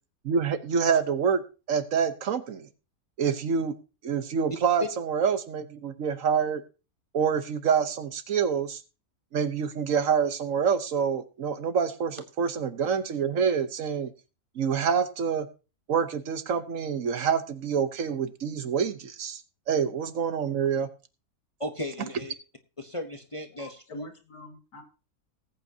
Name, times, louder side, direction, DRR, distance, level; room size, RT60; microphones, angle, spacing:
voice 1, 0.2-1.4 1.7-2.7 3.2-3.7 4.0-6.6 7.1-8.8 9.3-14.1 14.6-15.5 15.9-19.4 19.7-20.9, right 7 dB, 60° right, 1.3 m, -26 dB
voice 2, 21.6-22.3 22.8-24.1, left 1 dB, 25° left, 0.9 m, -35 dB
voice 3, 23.5-24.8, left 3 dB, 80° left, 2.6 m, -47 dB
19.0 x 8.6 x 2.8 m
omnidirectional pair, 1.6 m